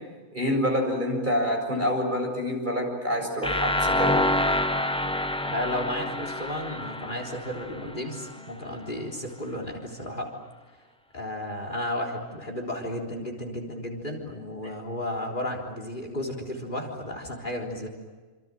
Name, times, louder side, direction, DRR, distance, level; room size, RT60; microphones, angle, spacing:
voice 1, 0.3-4.3, equal, 40° right, 2 dB, 7.4 m, -27 dB
sound 1, 3.4-8.3, left 1 dB, 5° left, 0.8 m, -27 dB
voice 2, 5.4-10.3 11.1-17.9, left 1 dB, 40° left, 2 dB, 4.0 m, -33 dB
28.0 x 27.0 x 7.7 m, 1.3 s
omnidirectional pair, 1.3 m